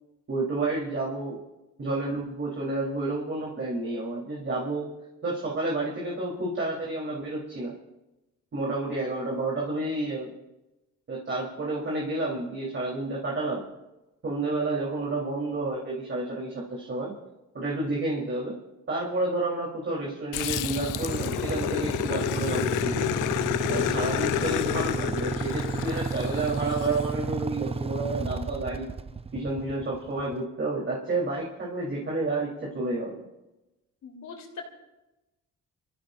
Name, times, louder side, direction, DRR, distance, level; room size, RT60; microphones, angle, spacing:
voice 1, 0.3-1.4 1.8-5.0 5.2-7.7 8.5-10.3 11.1-13.7 14.2-17.2 17.5-18.6 18.9-23.1 23.7-28.9 29.3-33.2, right 2 dB, 40° right, -4 dB, 3.7 m, -30 dB
Growling, 20.3-27.0, left 15 dB, 85° left, 0.5 m, -30 dB
Motorcycle / Idling, 20.4-30.4, right 4 dB, 20° right, 0.6 m, -32 dB
voice 2, 34.0-34.7, left 4 dB, 65° left, 0 dB, 3.6 m, -41 dB
29.5 x 15.0 x 2.6 m, 1.0 s
cardioid pair, 90°, 30 cm